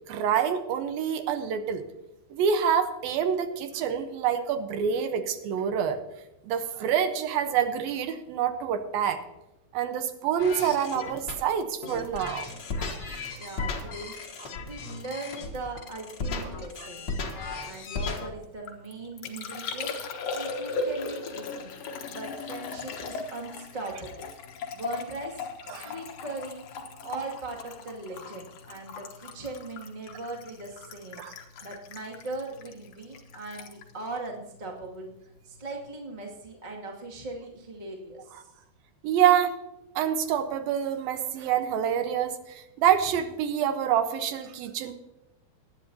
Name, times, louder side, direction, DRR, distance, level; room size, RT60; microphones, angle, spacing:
voice 1, 0.1-1.8 2.3-6.0 6.4-9.2 9.7-12.5 12.8-13.2 25.7-25.9 31.2-31.3 39.0-39.5 40.0-44.9, right 8 dB, 75° right, 9 dB, 2.7 m, -26 dB
sound 1, 10.4-18.3, left 3 dB, 80° left, 0.9 m, -35 dB
voice 2, 13.3-14.2 14.6-17.1 17.6-20.0 20.3-21.7 22.0-24.4 24.7-26.6 27.0-31.2 31.6-35.1 35.4-38.5, right 2 dB, 20° right, 0 dB, 1.3 m, -39 dB
Liquid, 18.4-35.1 35.3-35.9, left 4 dB, 60° left, 1.8 m, -38 dB
19.0 x 10.5 x 2.8 m, 0.94 s
omnidirectional pair, 4.3 m